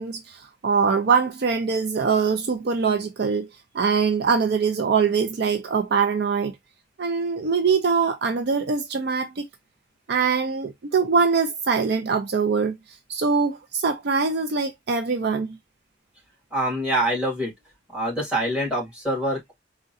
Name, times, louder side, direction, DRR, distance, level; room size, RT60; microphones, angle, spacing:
voice 1, 0.0-3.5 3.7-6.5 7.0-9.4 10.1-12.8 13.1-15.6, right 5 dB, 60° right, 0.4 m, -23 dB
voice 2, 16.5-17.5 17.9-19.5, right 1 dB, 5° right, 1.8 m, -25 dB
3.5 x 2.2 x 2.6 m
head